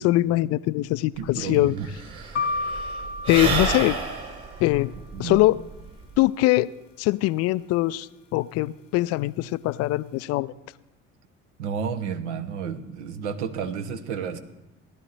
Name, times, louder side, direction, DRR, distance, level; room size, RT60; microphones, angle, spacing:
voice 1, 0.0-1.8 3.3-4.0 4.6-4.9 5.2-5.6 6.2-6.7 7.0-10.5, left 17 dB, 45° left, 18 dB, 0.4 m, -22 dB
Sigh / Breathing, 1.2-1.3 1.5-6.2, right 4 dB, 40° right, 3.3 m, -30 dB
voice 2, 1.2-1.9 5.1-5.4 11.6-14.4, right 7 dB, 70° right, 9 dB, 1.1 m, -31 dB
sound 1, 2.4-4.5, left 3 dB, 80° left, 0.8 m, -31 dB
17.0 x 11.5 x 4.1 m, 0.98 s
figure-of-eight pair, 55°, 36 cm